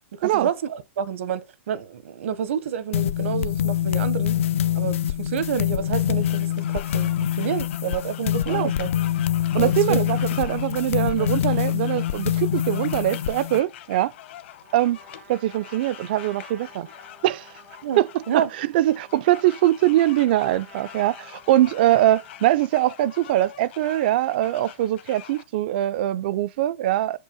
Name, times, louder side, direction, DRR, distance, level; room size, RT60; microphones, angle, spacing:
voice 1, 0.2-4.4 4.7-7.1 7.4-8.9 9.6-10.0 11.2-11.3 17.8-18.0 18.3-18.5, right 8 dB, 65° right, 0.9 m, -28 dB
sound 1, 2.9-13.6, left 11 dB, 70° left, 0.5 m, -25 dB
sound 2, 6.2-25.4, left 12 dB, 55° left, 0.9 m, -44 dB
voice 2, 9.5-14.1 14.7-15.0 15.3-16.9 17.2-17.5 18.0-27.2, right 14 dB, 45° right, 0.4 m, -22 dB
Trumpet, 14.6-22.7, right 6 dB, 85° right, 1.8 m, -52 dB
7.3 x 5.4 x 4.9 m
supercardioid pair, 165°, 7 cm